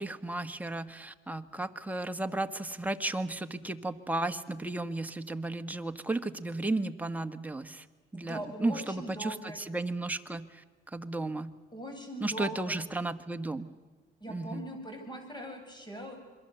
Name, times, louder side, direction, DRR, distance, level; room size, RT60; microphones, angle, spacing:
voice 1, 0.0-7.8 8.1-10.6 10.9-11.6 12.2-13.7 14.3-14.6, right 2 dB, 10° right, 6 dB, 1.5 m, -34 dB
voice 2, 8.1-9.6 11.7-12.8 14.2-16.2, right 1 dB, 20° left, 4 dB, 7.9 m, -41 dB
27.0 x 22.5 x 8.1 m, 1.3 s
cardioid pair, 90°, 20 cm